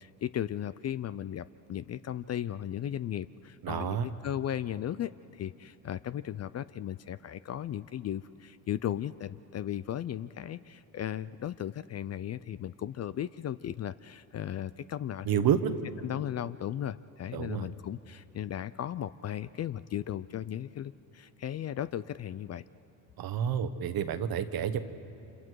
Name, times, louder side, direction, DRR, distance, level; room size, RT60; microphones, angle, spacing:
voice 1, 0.0-15.6 16.0-22.6, left 10 dB, 35° left, 15 dB, 0.5 m, -36 dB
voice 2, 3.6-4.1 15.2-15.7 17.3-17.7 23.2-24.8, right 9 dB, 55° right, 11 dB, 1.3 m, -29 dB
29.5 x 26.5 x 4.8 m, 2.9 s
supercardioid pair, 80°, 43 cm